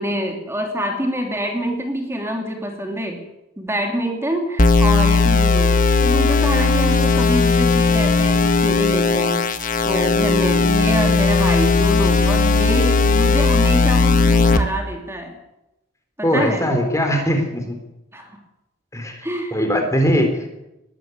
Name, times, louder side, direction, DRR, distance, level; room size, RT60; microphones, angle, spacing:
voice 1, 0.0-3.2 3.6-9.5 9.8-15.4 16.2-16.7 18.1-18.3 19.2-19.6, equal, 10° right, 3 dB, 3.0 m, -25 dB
sound 1, 4.6-14.6, left 4 dB, 40° left, 1.7 m, -17 dB
voice 2, 16.2-17.8 18.9-19.2 19.5-20.5, equal, 15° left, 5 dB, 3.9 m, -20 dB
20.5 x 14.0 x 9.6 m, 0.91 s
head